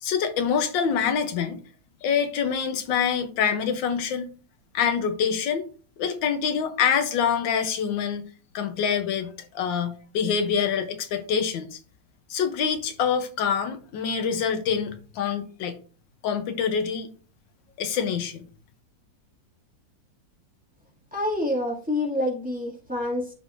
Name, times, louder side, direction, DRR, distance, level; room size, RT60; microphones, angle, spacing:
voice 1, 0.0-1.6 2.0-4.3 4.7-5.7 6.0-8.2 8.5-11.8 12.3-15.8 16.2-17.1 17.8-18.4, left 7 dB, 85° left, 1.6 m, -25 dB
voice 2, 21.1-23.3, left 1 dB, 5° right, 1.9 m, -27 dB
12.0 x 4.0 x 2.5 m
omnidirectional pair, 2.0 m